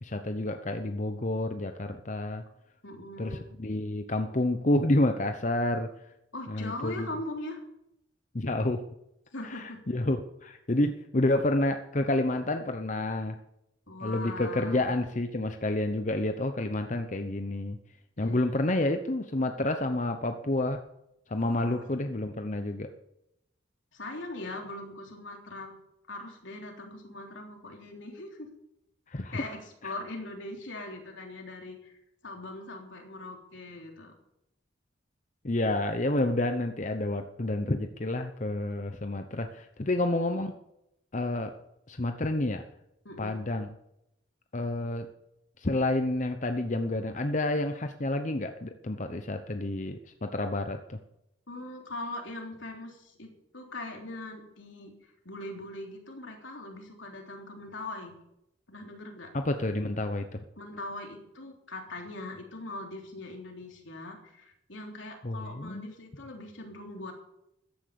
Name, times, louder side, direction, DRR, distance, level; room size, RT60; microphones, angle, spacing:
voice 1, 0.0-2.4 3.2-5.9 6.5-7.1 8.3-8.9 9.4-13.4 14.0-17.8 18.2-20.8 21.3-22.9 29.1-29.4 29.8-29.9 35.4-40.5 41.1-41.5 41.9-42.6 43.2-43.7 44.5-45.1 45.6-51.0 59.3-60.4 65.2-65.9, left 1 dB, 40° left, 7 dB, 0.9 m, -29 dB
voice 2, 2.8-3.5 6.3-7.6 9.3-9.8 13.9-14.8 18.2-18.4 21.3-21.8 23.9-25.8 26.1-28.5 29.3-34.1 39.9-40.0 43.1-43.4 51.5-58.1 58.7-59.3 60.6-67.1, left 2 dB, 80° left, 2 dB, 3.5 m, -41 dB
14.5 x 10.0 x 7.0 m, 0.82 s
head